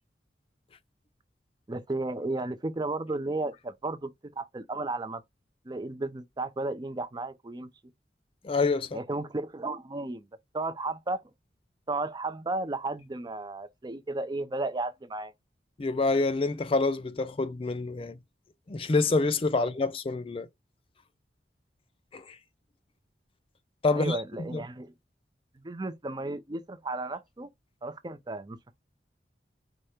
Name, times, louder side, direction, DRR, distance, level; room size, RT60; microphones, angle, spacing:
voice 1, 1.7-4.1 4.4-5.2 5.7-7.7 8.9-10.3 10.5-11.2 11.9-15.3 19.6-19.7 23.9-24.9 25.6-27.5 27.8-28.8, right 2 dB, 25° right, 0.5 m, -34 dB
voice 2, 8.4-9.0 15.8-18.2 18.7-20.5 22.1-22.4 23.8-24.2 24.5-24.6, left 3 dB, 30° left, 0.4 m, -27 dB
4.9 x 2.1 x 4.3 m
head